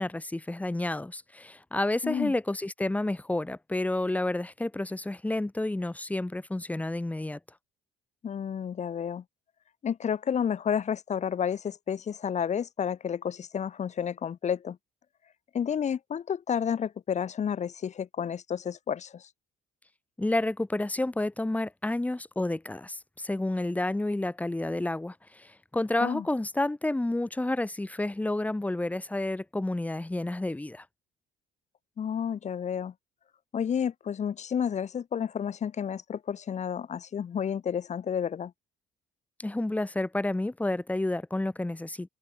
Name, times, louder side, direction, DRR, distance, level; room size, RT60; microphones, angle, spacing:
voice 1, 0.0-7.4 20.2-30.8 39.4-42.1, left 2 dB, 10° left, 2.1 m, -30 dB
voice 2, 2.0-2.3 8.2-9.2 9.8-14.8 15.5-19.3 26.0-26.2 32.0-32.9 33.5-38.5, left 8 dB, 45° left, 3.0 m, -31 dB
cardioid pair, 110°, 17 cm